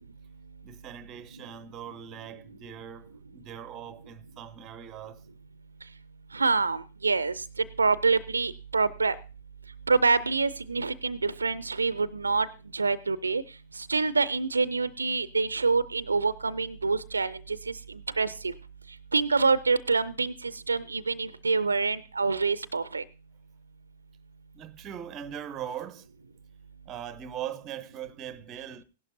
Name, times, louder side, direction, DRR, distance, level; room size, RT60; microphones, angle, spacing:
voice 1, 0.6-5.2 24.5-26.1 26.9-28.8, right 9 dB, 25° right, 0.6 m, -40 dB
voice 2, 6.3-7.4 7.8-9.2 9.9-12.5 12.7-13.4 13.8-17.7 18.2-18.5 19.1-23.0, right 4 dB, 75° right, 0.5 m, -26 dB
16.5 x 11.5 x 2.7 m
figure-of-eight pair, 105°, 0 cm